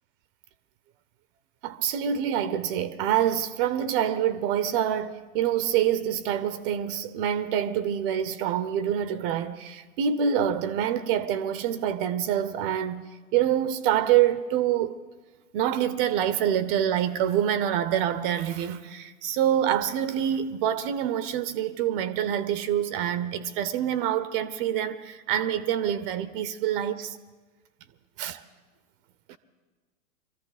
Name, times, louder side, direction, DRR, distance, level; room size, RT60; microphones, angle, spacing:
voice 1, 1.6-13.0 13.3-14.9 15.5-27.2 28.2-28.4 29.3-29.4, right 10 dB, 40° right, 0.7 m, -26 dB
23.5 x 14.0 x 4.1 m
hypercardioid pair, 110°, 42 cm